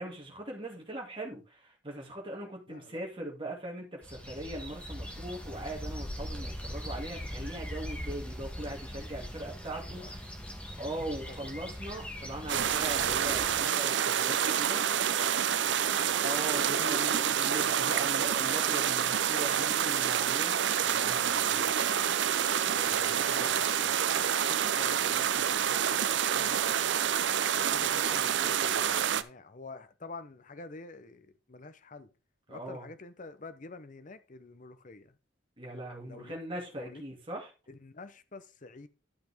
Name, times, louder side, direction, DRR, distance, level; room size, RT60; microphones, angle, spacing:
voice 1, 0.0-10.3 10.8-14.9 16.2-21.8 22.8-23.6 32.5-32.9 35.6-37.5, right 1 dB, 25° right, 2.3 m, -40 dB
voice 2, 2.7-3.0 9.9-10.1 11.3-11.5 15.2-16.2 16.6-17.1 22.7-26.9 27.7-32.1 32.5-35.2 36.1-36.3 36.7-37.0 37.7-38.9, left 3 dB, 40° left, 0.7 m, -48 dB
sound 1, 4.0-13.6, equal, 5° left, 1.6 m, -41 dB
sound 2, 12.5-29.2, right 9 dB, 60° right, 0.5 m, -28 dB
12.0 x 5.8 x 3.5 m
head